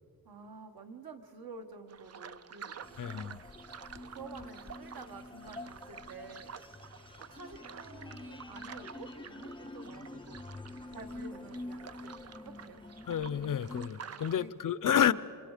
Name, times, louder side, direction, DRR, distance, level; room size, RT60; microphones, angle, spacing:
voice 1, 0.2-3.4 4.1-6.5 7.2-10.4 10.9-12.8 14.0-14.5 14.8-14.9, right 4 dB, 70° right, 1.6 m, -50 dB
sound 1, 1.9-14.4, right 7 dB, 45° right, 0.5 m, -50 dB
sound 2, 2.8-13.9, left 2 dB, 15° left, 0.4 m, -47 dB
voice 2, 3.0-3.4 13.1-15.1, left 9 dB, 55° left, 0.6 m, -29 dB
27.5 x 26.0 x 5.0 m
wide cardioid pair, 125°, 38 cm